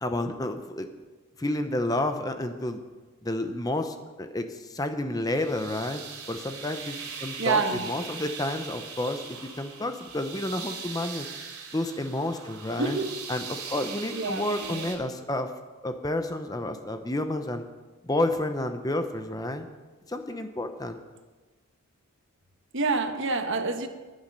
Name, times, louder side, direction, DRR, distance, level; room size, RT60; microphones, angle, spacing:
voice 1, 0.0-0.9 1.4-2.8 3.2-6.0 6.3-11.3 11.7-13.0 13.3-15.5 15.8-17.6 18.0-19.7 20.1-21.0, left 1 dB, 15° left, 7 dB, 0.7 m, -30 dB
sound 1, 5.4-15.0, right 6 dB, 85° right, 2.9 m, -40 dB
voice 2, 7.4-7.9 12.8-13.1 14.1-14.9 22.7-23.9, right 4 dB, 55° right, 6 dB, 1.2 m, -27 dB
21.0 x 7.3 x 5.4 m, 1.3 s
head